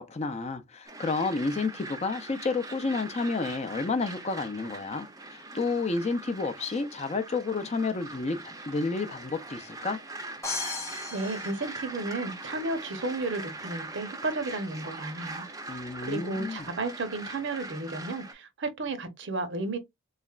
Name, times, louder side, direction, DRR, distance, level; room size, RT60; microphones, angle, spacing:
voice 1, 0.0-10.0 15.7-16.7, left 3 dB, 30° left, 0.4 m, -30 dB
sound 1, 0.8-18.3, right 2 dB, 15° right, 0.6 m, -42 dB
sound 2, 10.4-12.4, left 4 dB, 15° left, 0.8 m, -36 dB
voice 2, 11.1-19.8, right 2 dB, 55° right, 0.8 m, -33 dB
3.8 x 3.2 x 2.4 m
head